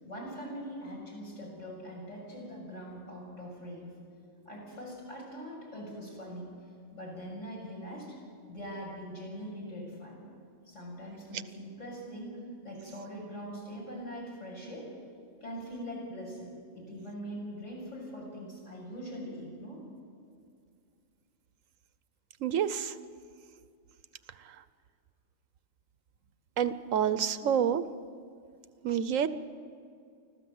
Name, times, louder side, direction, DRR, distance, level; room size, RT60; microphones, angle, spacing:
voice 1, 0.0-3.9 4.5-6.5 6.9-8.2 8.5-10.2 10.7-14.9 15.4-19.8, equal, 70° left, -3 dB, 7.3 m, -42 dB
voice 2, 22.4-22.9 26.6-27.9 28.8-29.3, right 8 dB, 80° right, 13 dB, 1.2 m, -28 dB
25.5 x 15.0 x 7.9 m, 2.3 s
omnidirectional pair, 1.3 m